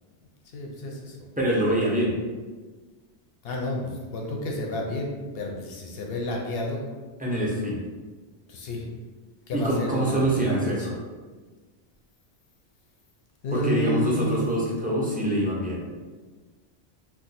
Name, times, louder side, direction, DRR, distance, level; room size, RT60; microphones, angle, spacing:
voice 1, 0.5-1.3 3.4-6.8 8.5-8.9 9.5-10.8 13.4-14.4, left 1 dB, 65° left, 1 dB, 0.7 m, -30 dB
voice 2, 1.4-2.1 7.2-7.8 9.5-10.9 13.5-15.9, right 1 dB, 15° right, -5 dB, 0.4 m, -25 dB
2.6 x 2.3 x 3.9 m, 1.4 s
omnidirectional pair, 1.1 m